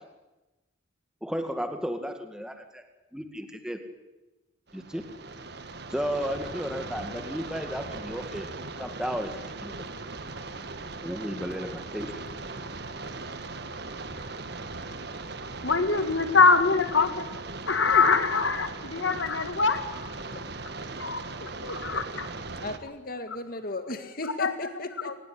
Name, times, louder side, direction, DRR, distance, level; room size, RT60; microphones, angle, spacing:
voice 1, 1.2-2.8 3.1-3.8 4.7-5.1 5.9-8.5 8.8-9.3 9.6-9.7 11.0-12.2, equal, 5° right, 6 dB, 2.1 m, -33 dB
sound 1, 4.7-22.8, right 3 dB, 60° right, 1.6 m, -39 dB
voice 2, 15.6-17.3 17.7-20.2 21.0-22.3 24.4-24.5 25.0-25.2, left 4 dB, 80° left, 10 dB, 2.1 m, -24 dB
voice 3, 22.6-25.2, left 2 dB, 50° left, 9 dB, 2.1 m, -35 dB
23.0 x 19.5 x 9.7 m, 1.1 s
head